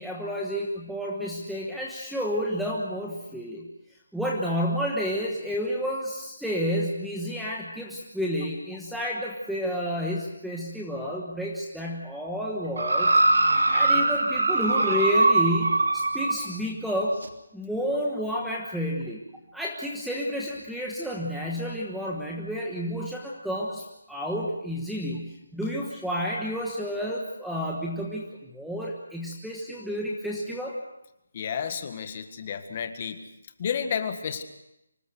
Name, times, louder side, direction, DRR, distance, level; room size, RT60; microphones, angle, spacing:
voice 1, 0.0-3.7 4.1-13.2 13.7-17.2 17.5-19.2 19.5-30.8, equal, ahead, -3 dB, 1.2 m, -30 dB
sound 1, 12.8-16.4 17.2-17.3, right 2 dB, 80° right, 3.0 m, -22 dB
voice 2, 31.3-33.2 33.6-34.4, left 7 dB, 30° left, 8 dB, 1.7 m, -31 dB
25.0 x 20.5 x 6.3 m, 0.86 s
hypercardioid pair, 175°, 0 cm